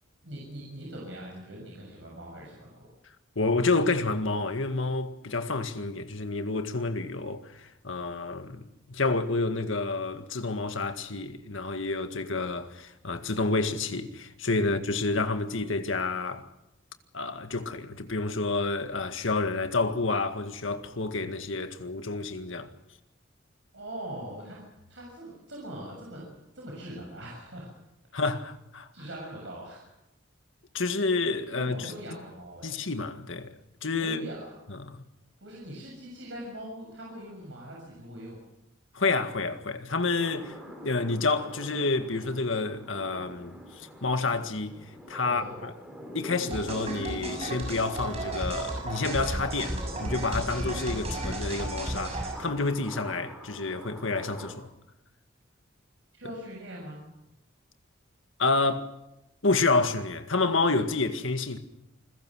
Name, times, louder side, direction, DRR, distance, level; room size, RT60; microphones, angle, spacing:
voice 1, 0.2-2.9 14.6-14.8 23.7-24.6 24.9-27.7 28.9-29.8 31.5-32.8 34.0-34.5 35.4-38.4 45.2-45.5 56.1-57.1, right 1 dB, 65° right, 7.0 m, -42 dB
voice 2, 3.4-16.5 17.1-22.7 28.1-28.9 30.7-31.9 32.6-34.2 34.8-35.0 38.9-40.5 40.8-44.8 45.1-45.7 46.1-54.7 58.4-59.0 59.4-61.6, left 3 dB, 75° left, 1.9 m, -29 dB
sound 1, 40.2-54.5, equal, 5° right, 4.6 m, -44 dB
sound 2, 46.5-52.3, right 1 dB, 30° right, 6.8 m, -33 dB
28.5 x 21.5 x 6.4 m
head